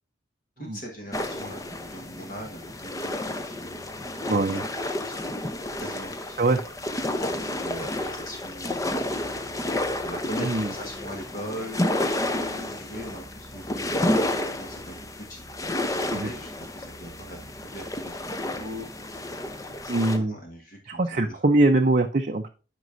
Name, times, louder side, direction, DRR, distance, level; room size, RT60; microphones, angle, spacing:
voice 1, 0.6-3.2 3.5-3.6 4.5-4.6 4.9-5.4 5.8-6.4 7.1-9.3 10.0-11.8 12.3-13.9 14.3-15.5 15.8-18.9 19.5-21.4, equal, 45° left, 1 dB, 1.5 m, -40 dB
sound 1, 1.1-20.2, left 1 dB, 15° left, 0.6 m, -31 dB
voice 2, 4.3-4.6 6.4-6.6 10.4-10.7 16.1-16.3 19.9-20.4 20.9-22.5, right 2 dB, 40° right, 3 dB, 0.5 m, -22 dB
9.3 x 5.3 x 2.6 m, 0.34 s
head